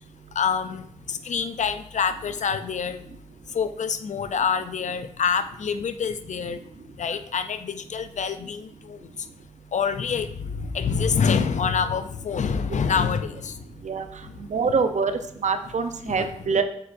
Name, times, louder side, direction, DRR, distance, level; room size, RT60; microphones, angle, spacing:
voice 1, 0.4-3.0 3.5-6.6 7.0-9.0 9.7-13.6 14.3-14.4 16.1-16.3, left 6 dB, 85° left, 11 dB, 0.4 m, -26 dB
voice 2, 14.4-15.1 15.4-16.6, right 5 dB, 80° right, 8 dB, 0.6 m, -24 dB
7.7 x 5.6 x 2.6 m, 0.66 s
cardioid pair, 50°, 12 cm